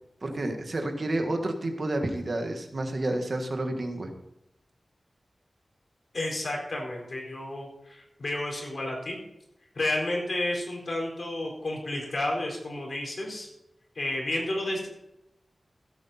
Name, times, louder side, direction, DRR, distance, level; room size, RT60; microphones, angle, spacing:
voice 1, 0.2-4.1, right 1 dB, 55° right, 5 dB, 1.8 m, -30 dB
voice 2, 6.1-9.2 9.7-13.5 13.9-14.9, left 1 dB, 60° left, -1 dB, 4.6 m, -31 dB
16.0 x 8.5 x 4.3 m, 0.86 s
wide cardioid pair, 80°, 0 cm